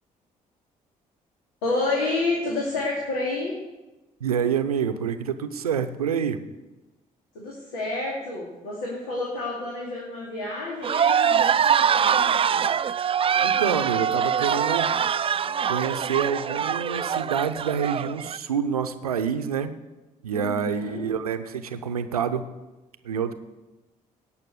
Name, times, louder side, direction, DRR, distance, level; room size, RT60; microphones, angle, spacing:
voice 1, 1.6-3.6 7.3-12.6 20.3-21.0, left 2 dB, 75° left, -3 dB, 2.4 m, -29 dB
voice 2, 4.2-6.4 13.4-14.9 15.6-19.7 20.2-22.4 23.0-23.3, right 7 dB, 85° right, 10 dB, 0.7 m, -27 dB
sound 1, 10.8-18.4, right 8 dB, 30° right, 0.4 m, -23 dB
17.0 x 5.8 x 7.9 m, 1.1 s
figure-of-eight pair, 45°, 18 cm